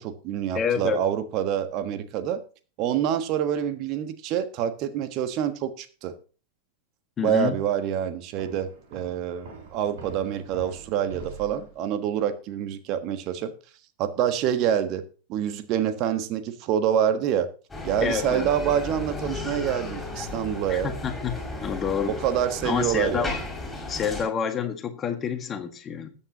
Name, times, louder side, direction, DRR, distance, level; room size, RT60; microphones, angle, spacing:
voice 1, 0.0-2.4 2.8-6.1 7.2-13.5 14.0-15.0 15.3-17.5 17.8-20.9 22.0-23.3, right 9 dB, 40° right, 9 dB, 1.4 m, -26 dB
voice 2, 0.5-1.0 7.2-7.6 18.0-18.5 20.7-22.2 22.6-23.4 23.9-26.1, left 7 dB, 25° left, 8 dB, 1.6 m, -28 dB
sound 1, 8.4-12.1, right 5 dB, 55° right, 7.3 m, -44 dB
Bicycle, 17.7-24.2, left 2 dB, 10° left, 6.3 m, -34 dB
20.5 x 8.8 x 2.9 m, 0.37 s
figure-of-eight pair, 90°, 0 cm